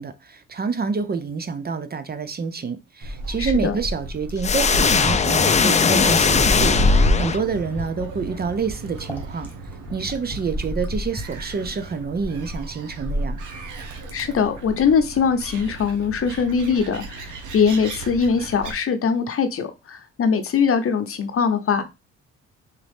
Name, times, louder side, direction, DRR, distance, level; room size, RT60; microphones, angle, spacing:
voice 1, 0.0-9.5 9.9-13.4, right 5 dB, 30° right, 10 dB, 0.6 m, -27 dB
Gull seagull, 3.0-18.7, equal, 80° right, 1.2 m, -29 dB
Fill (with liquid), 3.3-11.4 12.7-12.8, left 1 dB, 5° left, 1.6 m, -36 dB
voice 2, 3.4-3.7 14.1-17.3 17.5-21.8, left 6 dB, 45° left, 8 dB, 0.8 m, -21 dB
sound 1, 4.4-7.8, left 5 dB, 25° left, 0.4 m, -19 dB
4.2 x 3.6 x 3.5 m, 0.26 s
cardioid pair, 90°, 30 cm